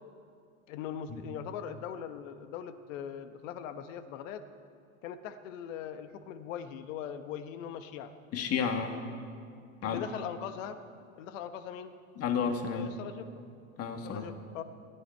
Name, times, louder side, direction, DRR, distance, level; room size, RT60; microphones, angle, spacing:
voice 1, 0.7-4.4 5.0-8.1 9.8-10.8 11.2-11.9 12.7-13.4 14.0-14.6, left 9 dB, 60° left, 10 dB, 1.2 m, -40 dB
voice 2, 8.3-9.0 9.8-10.0 12.2-12.9 13.8-14.3, left 6 dB, 35° left, 5 dB, 1.8 m, -31 dB
20.5 x 14.0 x 4.6 m, 2.3 s
hypercardioid pair, 105°, 42 cm